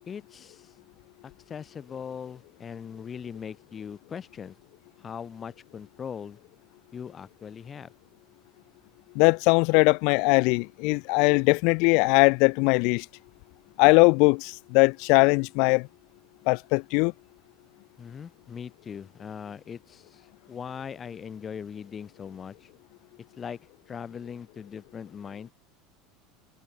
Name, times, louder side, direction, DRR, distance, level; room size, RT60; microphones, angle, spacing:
voice 1, 0.1-0.7 1.2-4.5 5.0-6.4 6.9-7.9 18.0-22.7 23.4-23.6 23.9-25.5, left 7 dB, 25° left, 6.8 m, -40 dB
voice 2, 9.2-13.1 13.8-15.9 16.5-17.1, left 33 dB, 65° left, 1.8 m, -20 dB
supercardioid pair, 130°, 0 cm